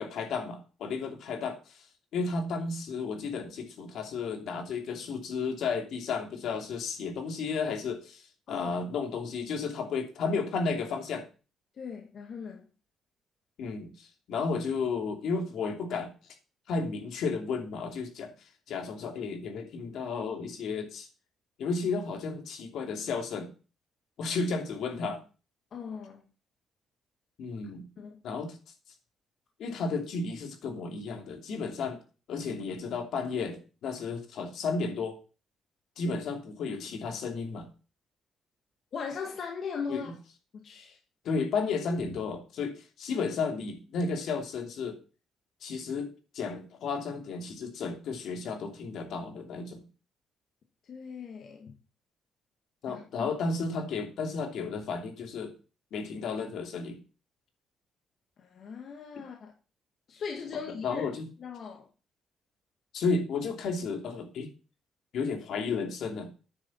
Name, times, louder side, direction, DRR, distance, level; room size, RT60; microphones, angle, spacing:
voice 1, 0.0-1.8 2.1-11.2 13.6-16.1 16.7-18.3 18.7-21.1 21.6-23.5 24.2-25.2 27.4-27.8 28.2-28.6 29.6-32.0 32.3-35.2 36.0-37.7 39.9-40.1 41.2-45.0 45.6-49.8 52.8-55.5 55.9-57.0 60.8-61.2 62.9-64.5 65.1-66.3, left 4 dB, 75° left, 5 dB, 2.8 m, -33 dB
voice 2, 11.8-12.7 25.7-26.2 28.0-28.2 38.9-40.1 40.5-41.0 50.8-51.8 52.9-53.3 58.4-59.5 60.1-61.1 61.4-61.9, left 6 dB, 60° left, 2 dB, 1.9 m, -39 dB
9.7 x 6.9 x 7.2 m, 0.35 s
cardioid pair, 90°, 0 cm